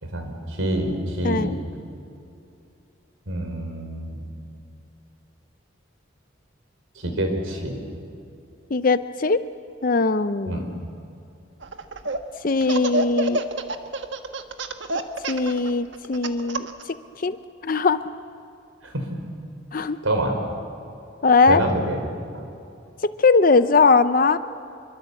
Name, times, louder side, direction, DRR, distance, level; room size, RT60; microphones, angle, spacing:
voice 1, 0.0-1.6 3.3-4.3 6.9-7.9 10.5-10.6 18.8-19.2 20.0-20.4 21.5-22.0 22.3-22.5, right 1 dB, 85° right, 4 dB, 4.6 m, -26 dB
voice 2, 1.2-1.6 8.7-9.4 9.8-10.6 12.4-13.4 15.3-16.7 17.2-17.4 17.6-18.0 19.7-20.0 21.2-21.6 23.0-24.4, left 4 dB, 45° left, 12 dB, 0.6 m, -20 dB
Laughter, 11.6-12.2 12.6-16.8, right 2 dB, 65° right, 1.5 m, -27 dB
26.0 x 23.5 x 8.4 m, 2.6 s
head